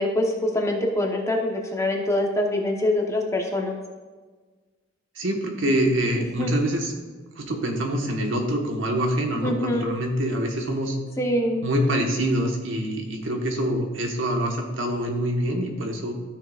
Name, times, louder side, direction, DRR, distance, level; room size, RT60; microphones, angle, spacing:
voice 1, 0.0-3.7 6.4-6.5 9.4-9.9 11.2-11.6, left 1 dB, 15° left, 1 dB, 1.0 m, -24 dB
voice 2, 5.1-6.9 7.4-11.0 11.6-16.1, right 1 dB, 80° right, 2 dB, 1.3 m, -25 dB
12.5 x 6.7 x 2.4 m, 1.4 s
head